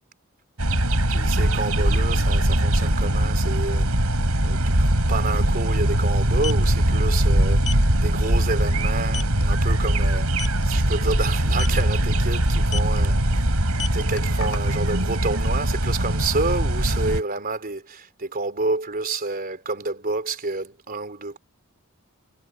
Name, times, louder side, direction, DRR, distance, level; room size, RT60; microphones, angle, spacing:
sound 1, 0.6-17.2, right 1 dB, 85° right, 4.5 m, -21 dB
voice 1, 1.1-4.1 4.4-7.6 8.0-13.5 13.9-21.4, right 3 dB, 40° right, 3.6 m, -29 dB
sound 2, 4.6-4.7 4.9-5.1 6.2-6.6 7.6-7.8 8.3-8.5 8.8-8.9 9.1-9.4 10.3-10.6 11.5-11.8 12.7-13.0 13.6-14.9, left 7 dB, 85° left, 3.1 m, -31 dB
head